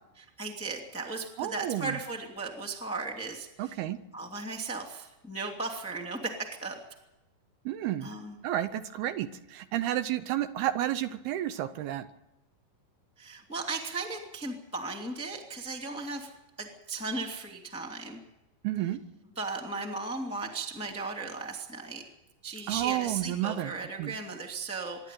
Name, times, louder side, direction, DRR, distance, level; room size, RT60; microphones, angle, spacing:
voice 1, 0.4-3.8 4.1-6.8 8.0-8.4 13.2-16.3 16.6-18.2 19.3-22.1 22.4-25.1, right 3 dB, 5° left, 2 dB, 1.4 m, -36 dB
voice 2, 1.4-1.9 3.6-4.0 7.7-8.1 8.4-12.1 18.6-19.0 22.7-23.7 24.0-24.1, right 13 dB, 75° right, 11 dB, 2.6 m, -31 dB
25.5 x 11.5 x 9.3 m, 0.93 s
omnidirectional pair, 4.9 m